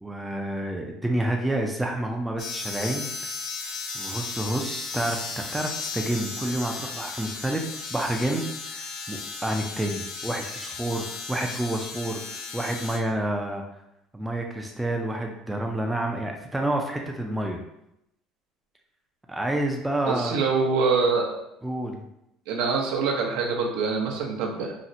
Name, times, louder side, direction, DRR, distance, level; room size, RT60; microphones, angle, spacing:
voice 1, 0.0-3.1 3.9-13.6 14.1-17.6 19.3-20.4 21.6-22.0, right 1 dB, 5° right, 1 dB, 0.3 m, -29 dB
sound 1, 2.4-13.0, left 4 dB, 60° left, 0.5 m, -35 dB
voice 2, 20.1-21.3 22.5-24.7, right 4 dB, 80° right, 1 dB, 0.6 m, -25 dB
4.1 x 2.0 x 2.5 m, 0.82 s
cardioid pair, 150°, 0 cm